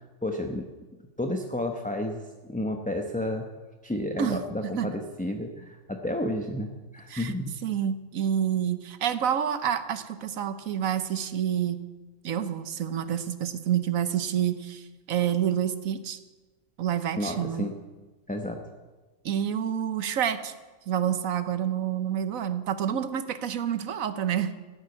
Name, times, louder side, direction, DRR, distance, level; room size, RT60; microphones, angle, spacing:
voice 1, 0.2-0.6 1.2-3.5 3.8-7.5 17.2-17.7 18.3-18.6, left 1 dB, 5° left, 3 dB, 0.9 m, -31 dB
voice 2, 4.2-4.9 7.1-7.3 7.6-11.8 12.2-16.2 16.8-17.7 19.2-20.5 20.9-24.5, right 9 dB, 85° right, 11 dB, 1.3 m, -28 dB
15.0 x 8.2 x 9.5 m, 1.2 s
omnidirectional pair, 1.4 m